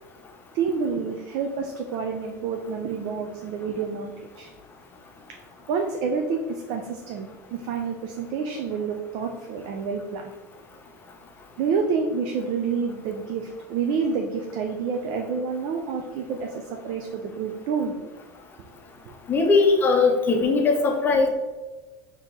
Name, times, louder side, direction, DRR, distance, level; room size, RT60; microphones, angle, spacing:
voice 1, 0.5-4.5 5.7-10.3 11.6-17.9 18.6-18.7 19.1-19.2, right 5 dB, 60° right, 3 dB, 0.5 m, -28 dB
voice 2, 19.3-21.3, left 4 dB, 20° left, 2 dB, 0.7 m, -19 dB
4.5 x 2.9 x 3.7 m, 1.2 s
supercardioid pair, 140°, 9 cm